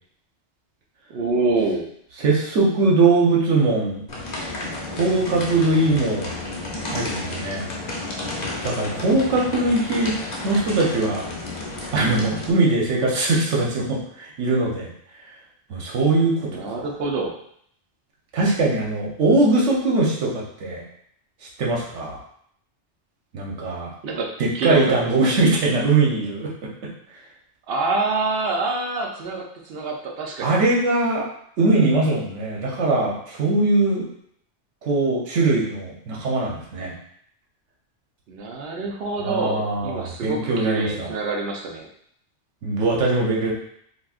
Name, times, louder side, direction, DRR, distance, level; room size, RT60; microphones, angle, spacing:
voice 1, 1.1-1.9 16.4-17.3 24.0-24.3 24.5-25.3 27.7-30.5 38.3-41.9, right 3 dB, 65° right, 0 dB, 0.8 m, -26 dB
voice 2, 2.2-4.0 4.9-6.3 6.9-7.6 8.6-10.1 10.4-11.3 11.9-14.9 15.7-16.9 18.3-20.8 21.6-22.2 23.3-23.9 24.4-26.5 30.4-31.2 31.6-34.0 34.8-36.9 39.2-41.1 42.6-43.5, right 2 dB, 80° right, -3 dB, 1.1 m, -21 dB
sound 1, 4.1-12.5, left 2 dB, 45° left, 0.7 m, -32 dB
4.0 x 2.3 x 2.4 m, 0.67 s
omnidirectional pair, 1.2 m